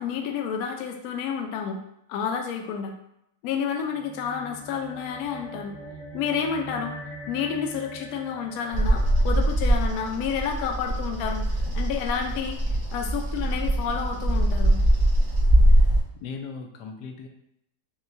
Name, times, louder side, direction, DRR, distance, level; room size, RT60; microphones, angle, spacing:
voice 1, 0.0-1.8 2.1-2.9 3.4-5.7 6.1-6.9 7.3-12.6 12.9-14.8, left 7 dB, 70° left, 4 dB, 0.9 m, -30 dB
sound 1, 3.8-10.5, right 1 dB, 40° left, 0.7 m, -42 dB
Bird vocalization bird call bird song, 8.7-16.0, right 1 dB, 45° right, 1.0 m, -22 dB
voice 2, 16.2-17.3, left 5 dB, 90° left, 3 dB, 1.2 m, -38 dB
5.4 x 2.2 x 2.6 m, 0.79 s
omnidirectional pair, 1.8 m